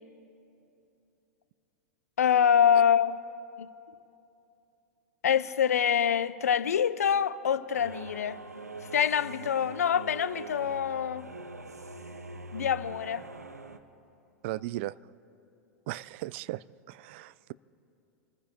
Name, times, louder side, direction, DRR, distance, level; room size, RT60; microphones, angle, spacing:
voice 1, 2.2-3.2 3.6-3.7 5.2-8.4 8.9-11.3 12.5-13.2, left 8 dB, 70° left, 0.6 m, -25 dB
sound 1, 7.7-13.8, right 2 dB, 90° right, 0.8 m, -43 dB
voice 2, 14.4-14.9 15.9-17.5, right 17 dB, 50° right, 0.3 m, -37 dB
28.5 x 15.0 x 3.0 m
figure-of-eight pair, 95°, 8 cm